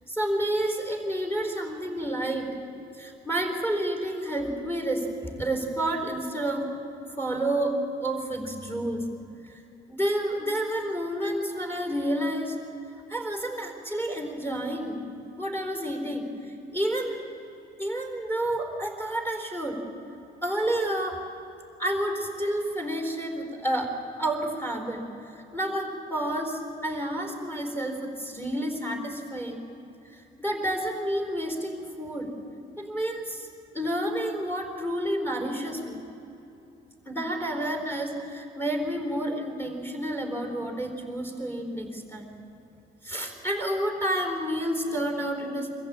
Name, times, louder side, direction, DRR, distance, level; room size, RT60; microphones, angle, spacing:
voice 1, 0.1-2.5 3.0-6.7 7.2-9.1 9.4-9.6 9.9-12.6 13.1-15.0 15.4-17.3 17.8-19.8 20.4-21.2 21.8-25.0 25.3-29.6 30.4-32.3 32.8-33.5 33.7-36.0 37.1-42.3 43.0-45.7, right 1 dB, 15° left, 3 dB, 4.2 m, -30 dB
24.0 x 15.0 x 8.7 m, 3.0 s
cardioid pair, 110°, 17 cm